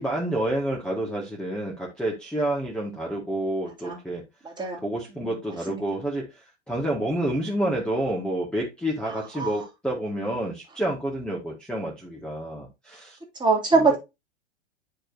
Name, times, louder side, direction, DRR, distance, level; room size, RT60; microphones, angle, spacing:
voice 1, 0.0-4.2 4.8-13.2 13.7-14.0, right 1 dB, 5° left, 1.9 m, -29 dB
voice 2, 13.4-14.0, right 4 dB, 15° right, 2.5 m, -22 dB
8.6 x 5.2 x 2.7 m
hypercardioid pair, 105°, 34 cm